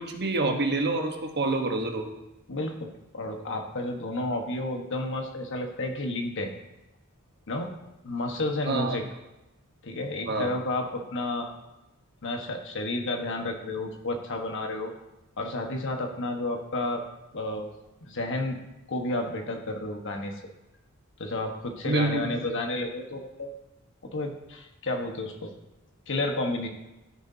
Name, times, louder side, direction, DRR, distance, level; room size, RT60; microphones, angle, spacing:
voice 1, 0.0-2.1 8.7-9.0 10.3-10.5 21.8-22.4, right 2 dB, 50° right, 4 dB, 1.2 m, -27 dB
voice 2, 2.5-6.5 7.5-7.7 8.0-9.0 9.8-11.5 12.2-14.9 15.4-17.0 17.3-17.7 18.0-18.6 18.9-20.3 21.2-23.5 24.1-25.5 26.1-26.7, left 2 dB, 60° left, 3 dB, 1.3 m, -31 dB
12.5 x 10.0 x 2.8 m, 0.95 s
head